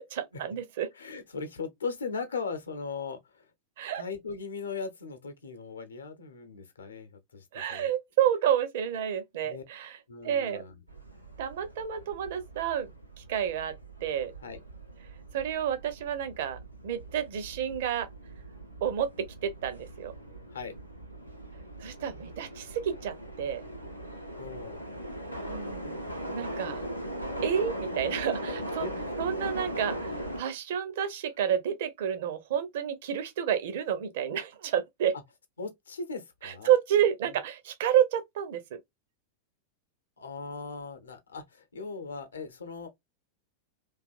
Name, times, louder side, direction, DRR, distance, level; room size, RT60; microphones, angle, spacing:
voice 1, 0.0-0.9 3.8-4.0 7.5-10.0 10.2-10.6 11.4-12.9 13.3-14.3 15.3-18.1 18.8-20.1 21.8-23.6 25.5-26.0 26.3-26.8 27.4-28.9 29.2-35.1 36.4-38.8, right 9 dB, 55° right, 0.5 m, -30 dB
voice 2, 0.9-3.5 4.0-7.9 9.4-9.6 10.1-10.8 14.4-14.6 20.5-20.7 24.4-24.9 28.8-29.1 35.6-36.7 37.3-37.4 40.2-42.9, left 4 dB, 70° left, 0.7 m, -38 dB
sound 1, 10.9-30.4, right 1 dB, 90° right, 0.8 m, -40 dB
2.8 x 2.4 x 2.4 m
figure-of-eight pair, 90°, 0 cm